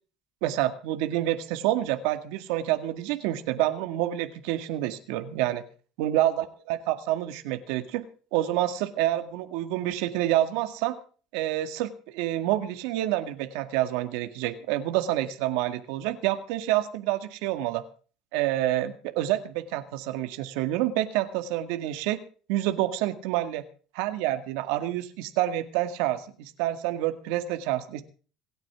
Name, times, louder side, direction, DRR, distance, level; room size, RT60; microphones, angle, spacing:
voice 1, 0.4-5.6 6.0-8.0 8.3-11.0 11.3-17.8 18.3-22.2 22.5-23.6 23.9-28.0, right 14 dB, 85° right, 9 dB, 1.9 m, -28 dB
27.0 x 9.1 x 3.7 m, 0.39 s
supercardioid pair, 110°, 0 cm